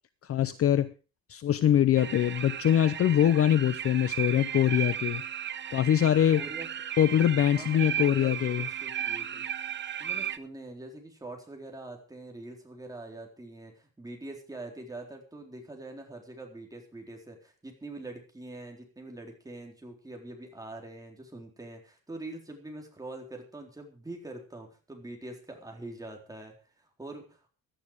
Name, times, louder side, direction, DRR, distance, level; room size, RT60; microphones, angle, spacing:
voice 1, 0.2-0.9 1.3-5.2 5.7-6.4 7.0-8.7, left 10 dB, 40° left, 14 dB, 0.7 m, -23 dB
sound 1, 1.9-10.4, right 9 dB, 30° right, 0.8 m, -35 dB
voice 2, 6.3-6.9 7.5-9.5 10.0-27.5, right 2 dB, 10° right, 2 dB, 3.9 m, -44 dB
16.5 x 11.5 x 5.0 m, 0.35 s
cardioid pair, 165°, 37 cm